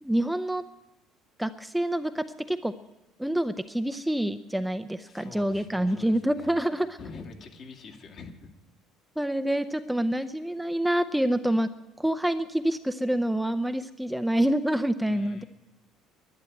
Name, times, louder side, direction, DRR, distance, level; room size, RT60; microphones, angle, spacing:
voice 1, 0.0-0.6 1.4-2.7 3.2-7.0 9.2-11.7 12.0-15.4, right 1 dB, 5° right, 9 dB, 0.6 m, -27 dB
voice 2, 5.1-6.7 7.0-8.5 15.0-15.5, left 4 dB, 50° left, 2 dB, 2.4 m, -45 dB
11.5 x 10.5 x 9.0 m, 0.98 s
hypercardioid pair, 60°, 0 cm